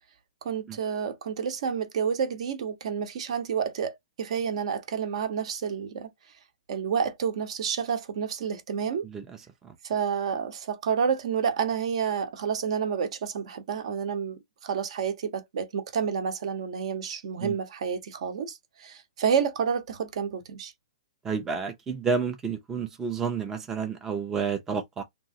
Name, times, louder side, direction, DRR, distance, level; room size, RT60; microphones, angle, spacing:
voice 1, 0.4-6.1 6.7-9.1 9.8-20.7, right 7 dB, 60° right, 0.8 m, -29 dB
voice 2, 9.0-9.4 9.6-9.7 17.4-17.6 21.2-25.0, right 5 dB, 10° right, 0.4 m, -30 dB
3.0 x 2.4 x 2.6 m
hypercardioid pair, 155°, 4 cm